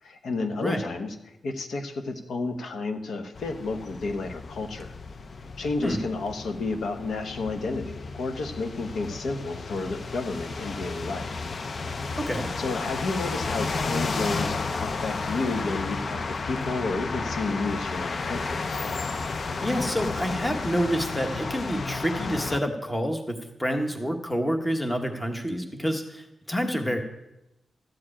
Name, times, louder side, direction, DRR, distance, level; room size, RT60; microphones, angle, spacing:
voice 1, 0.0-4.9 5.6-11.5 12.6-18.8, left 3 dB, 75° left, 6 dB, 1.0 m, -31 dB
sound 1, 3.3-22.6, left 4 dB, 40° left, 0.4 m, -32 dB
voice 2, 12.2-12.5 19.6-27.0, equal, 10° left, 4 dB, 1.1 m, -28 dB
13.0 x 4.7 x 8.6 m, 0.92 s
wide cardioid pair, 145°, 0 cm